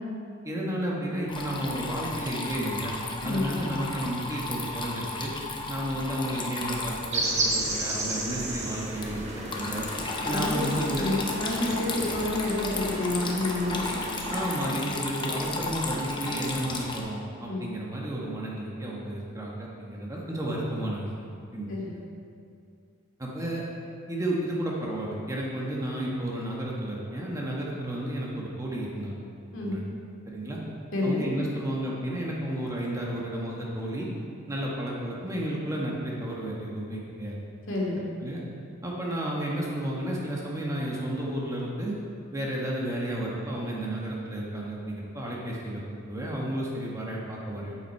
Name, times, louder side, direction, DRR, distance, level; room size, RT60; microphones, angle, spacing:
voice 1, 0.4-3.0 3.2-5.3 5.7-9.9 10.2-11.1 14.3-21.1 21.5-21.8 23.2-23.6 24.1-29.2 29.6-29.8 30.3-30.6 31.0-34.1 34.5-37.4 38.2-38.4 38.8-42.0 42.3-47.8, right 1 dB, 15° right, -4 dB, 1.2 m, -32 dB
Water tap faucet / Trickle dribble, 1.3-17.0, left 2 dB, 25° left, 0.8 m, -34 dB
sound 1, 7.1-14.7, right 1 dB, 35° right, 1.5 m, -33 dB
voice 2, 10.2-13.9 17.5-17.7 21.7-21.9 29.5-29.7 30.9-31.2 37.7-38.0, left 2 dB, 70° left, -4 dB, 2.3 m, -29 dB
8.4 x 8.2 x 4.6 m, 2.4 s
head